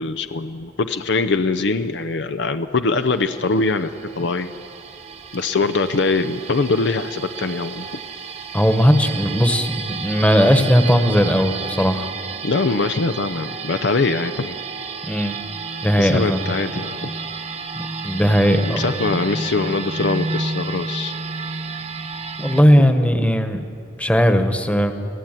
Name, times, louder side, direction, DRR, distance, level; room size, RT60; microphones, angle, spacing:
voice 1, 0.0-4.5 5.3-7.9 12.4-14.6 16.0-17.1 18.5-21.1, left 3 dB, 65° left, 9 dB, 0.7 m, -22 dB
sound 1, 3.0-22.6, right 4 dB, 35° right, 1.2 m, -31 dB
voice 2, 8.5-12.1 15.0-15.4 15.8-16.4 17.8-18.8 22.4-23.6 24.0-24.9, equal, 5° left, 7 dB, 1.3 m, -17 dB
25.0 x 16.0 x 9.1 m, 2.6 s
head